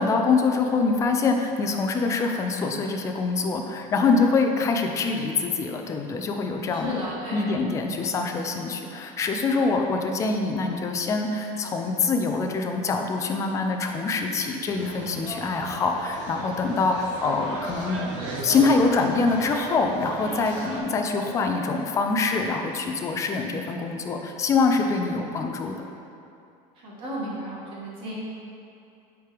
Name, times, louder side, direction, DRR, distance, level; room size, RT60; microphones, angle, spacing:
voice 1, 0.0-18.0 18.4-25.8, left 4 dB, 20° left, 4 dB, 0.4 m, -25 dB
voice 2, 6.7-7.4 8.8-9.0 16.4-16.7 20.2-20.4 26.8-28.1, right 1 dB, 30° right, -5 dB, 1.4 m, -35 dB
sound 1, 14.7-20.8, right 2 dB, 65° right, 1.3 m, -36 dB
8.3 x 4.5 x 3.3 m, 2.6 s
cardioid pair, 170°, 17 cm